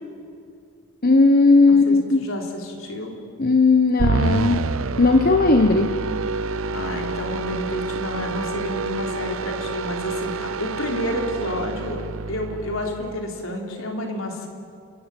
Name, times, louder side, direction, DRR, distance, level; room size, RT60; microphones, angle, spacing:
voice 1, 1.0-2.3 3.4-4.6 5.0-5.9, left 3 dB, 45° left, 7 dB, 1.1 m, -16 dB
voice 2, 1.7-3.2 6.7-12.0 12.3-14.5, left 1 dB, 75° left, 2 dB, 3.7 m, -30 dB
sound 1, 4.0-13.4, right 4 dB, 75° right, 0.7 m, -27 dB
29.5 x 15.0 x 9.1 m, 2.4 s
head